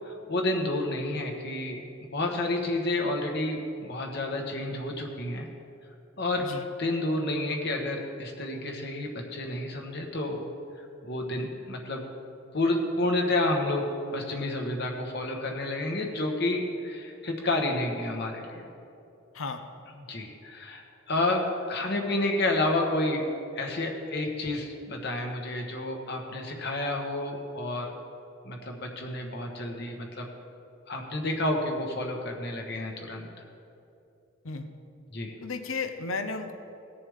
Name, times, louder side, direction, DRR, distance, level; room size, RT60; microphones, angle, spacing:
voice 1, 0.0-5.5 6.2-6.5 6.8-10.4 10.8-12.0 12.5-13.9 14.1-18.7 19.9-23.2 23.5-27.9 28.4-30.3 30.9-33.3 35.1-35.3, left 2 dB, 55° left, 2 dB, 1.3 m, -30 dB
voice 2, 35.4-36.5, left 4 dB, 80° left, 8 dB, 0.8 m, -33 dB
18.0 x 6.9 x 3.6 m, 2.8 s
head